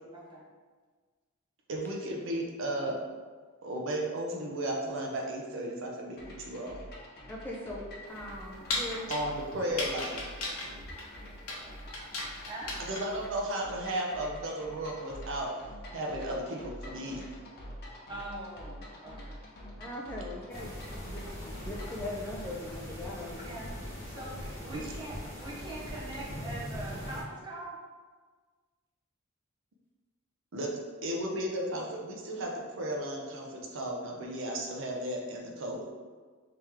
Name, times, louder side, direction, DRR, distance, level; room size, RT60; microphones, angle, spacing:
voice 1, 1.7-3.0 3.6-6.8 9.1-10.2 12.9-15.5 15.9-17.3 24.7-24.8 30.5-30.7 31.0-35.8, right 1 dB, 60° right, -1 dB, 0.6 m, -34 dB
sound 1, 6.2-22.0, equal, 50° left, 0.7 m, -47 dB
voice 2, 7.3-9.1 19.8-20.7 21.1-23.6, left 1 dB, 10° left, -4 dB, 0.3 m, -40 dB
sound 2, 8.1-13.3, left 2 dB, 85° left, 0.8 m, -37 dB
voice 3, 18.1-19.4 23.4-27.8, right 1 dB, 20° right, -5 dB, 0.9 m, -42 dB
sound 3, 20.5-27.2, equal, 40° right, 1.2 m, -41 dB
3.3 x 2.9 x 3.5 m, 1.5 s
head